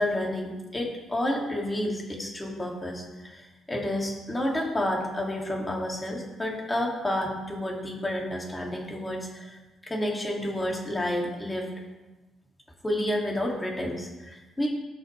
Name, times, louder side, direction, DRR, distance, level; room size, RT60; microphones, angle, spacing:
voice 1, 0.0-11.7 12.8-14.7, left 1 dB, 15° left, -1 dB, 2.4 m, -30 dB
16.5 x 6.4 x 3.3 m, 1.1 s
cardioid pair, 90°, 0 cm